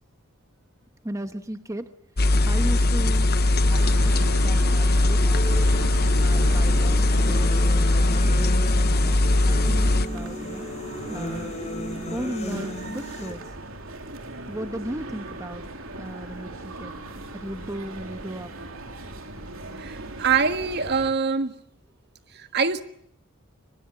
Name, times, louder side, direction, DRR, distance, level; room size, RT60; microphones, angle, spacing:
voice 1, 1.0-1.9 2.4-3.3 3.7-5.4 6.0-10.7 11.1-11.5 12.1-13.4 14.5-15.6 16.0-16.9 17.3-18.5, right 1 dB, 15° right, 1.1 m, -36 dB
sound 1, 2.2-10.1, left 2 dB, 45° left, 1.1 m, -20 dB
sound 2, 3.7-21.1, right 2 dB, 65° right, 3.4 m, -38 dB
sound 3, 5.3-13.3, left 1 dB, 30° left, 5.4 m, -34 dB
voice 2, 19.8-21.6 22.3-22.8, right 5 dB, 50° right, 1.5 m, -24 dB
24.0 x 21.5 x 8.5 m
head